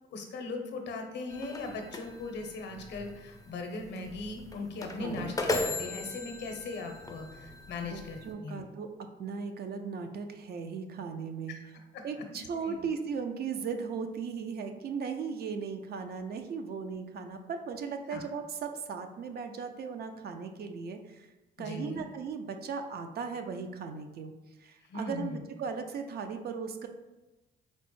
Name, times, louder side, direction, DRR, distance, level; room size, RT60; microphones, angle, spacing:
voice 1, 0.1-8.7 11.5-11.6 11.9-12.8 18.1-18.3 21.6-22.1 24.8-25.4, left 3 dB, 60° left, 4 dB, 0.6 m, -39 dB
sound 1, 1.3-8.3, left 2 dB, 15° left, 0.4 m, -38 dB
voice 2, 5.0-5.3 7.8-8.9 9.2-11.6 12.0-21.3 21.6-24.3 24.6-26.9, right 5 dB, 55° right, 6 dB, 0.4 m, -37 dB
4.2 x 2.0 x 3.0 m, 1.1 s
cardioid pair, 90°, 20 cm